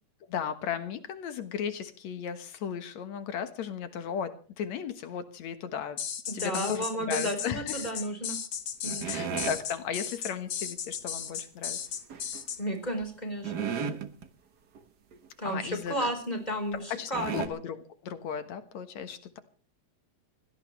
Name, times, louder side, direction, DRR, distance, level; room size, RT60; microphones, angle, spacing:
voice 1, 0.3-6.0 6.3-8.0 9.0-11.8 15.4-16.1 16.7-19.4, left 8 dB, 75° left, 9 dB, 2.6 m, -36 dB
sound 1, 6.0-12.6, left 8 dB, 50° left, 1.7 m, -35 dB
voice 2, 6.3-8.4 8.8-9.2 12.6-13.7 15.4-17.5, equal, 15° left, 5 dB, 4.2 m, -33 dB
sound 2, 8.8-9.6 12.1-12.4 13.0-13.1 13.4-14.3 14.8-14.9 15.1-15.3 15.8-15.9 16.7-16.8 17.1-17.5, right 7 dB, 50° right, 1.3 m, -34 dB
23.0 x 17.0 x 3.3 m, 0.40 s
omnidirectional pair, 3.3 m